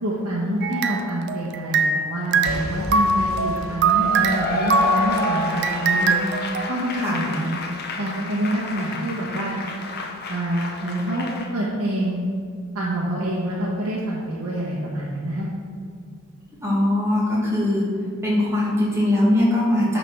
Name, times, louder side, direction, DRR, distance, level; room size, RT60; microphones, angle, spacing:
voice 1, 0.0-6.2 6.7-7.6 8.0-9.6 10.3-11.3 11.5-12.2 12.7-15.5, right 1 dB, 80° right, -7 dB, 1.4 m, -26 dB
sound 1, 0.6-2.1 2.3-6.6, right 4 dB, 55° right, 0.5 m, -22 dB
Boom / Shatter / Crushing, 2.4-6.4 7.0-7.1, left 1 dB, 70° left, 1.2 m, -37 dB
Cheering / Applause / Crowd, 3.8-11.5, left 3 dB, 50° left, 0.8 m, -30 dB
voice 2, 16.6-17.9 18.2-20.0, left 1 dB, 15° right, -6 dB, 2.1 m, -21 dB
9.6 x 4.0 x 6.1 m, 2.2 s
head